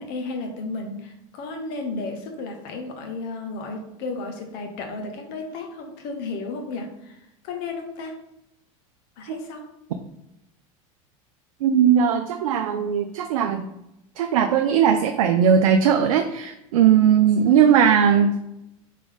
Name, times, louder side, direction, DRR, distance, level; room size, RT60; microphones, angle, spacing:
voice 1, 0.0-7.2 7.4-8.2 9.2-9.7, left 3 dB, 60° left, 4 dB, 1.0 m, -33 dB
voice 2, 11.6-13.7 14.2-18.3, right 8 dB, 80° right, 5 dB, 0.4 m, -18 dB
3.8 x 3.6 x 3.5 m, 0.85 s
hypercardioid pair, 90°, 18 cm